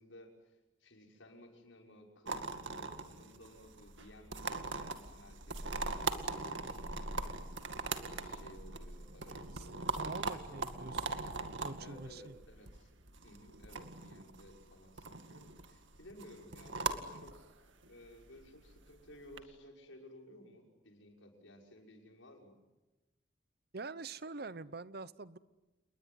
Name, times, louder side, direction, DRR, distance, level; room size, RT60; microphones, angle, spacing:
voice 1, 0.0-7.7 8.0-11.0 11.8-12.9 13.2-22.6, left 1 dB, 85° left, 1 dB, 6.1 m, -57 dB
sound 1, 2.3-19.4, right 3 dB, 75° right, 2.1 m, -41 dB
voice 2, 10.0-11.2 11.6-12.3 23.7-25.4, right 3 dB, 55° right, 16 dB, 0.9 m, -45 dB
29.0 x 21.5 x 9.6 m, 1.1 s
head